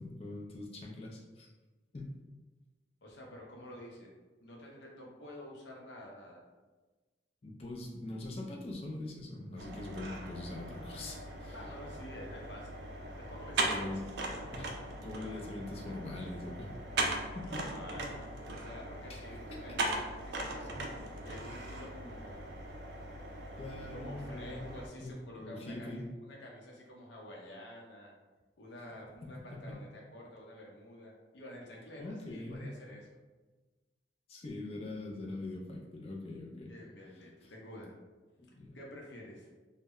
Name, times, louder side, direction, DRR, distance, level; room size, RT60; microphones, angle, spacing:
voice 1, 0.0-1.5 1.9-2.1 7.4-11.6 13.7-14.0 14.4-14.7 15.0-16.8 17.3-17.6 19.1-19.2 19.5-19.6 23.6-26.1 29.2-29.8 32.0-32.7 34.3-36.7 38.4-38.8, left 2 dB, 35° left, -1 dB, 0.4 m, -43 dB
voice 2, 3.0-4.1 4.4-6.4 11.5-12.7 13.2-13.9 17.4-18.1 18.5-22.5 23.9-28.1 28.6-33.1 36.7-37.9 38.7-39.5, left 1 dB, 80° left, -2 dB, 0.6 m, -49 dB
sound 1, 9.6-24.9, right 2 dB, 65° right, 0.4 m, -39 dB
2.1 x 2.1 x 3.6 m, 1.2 s
head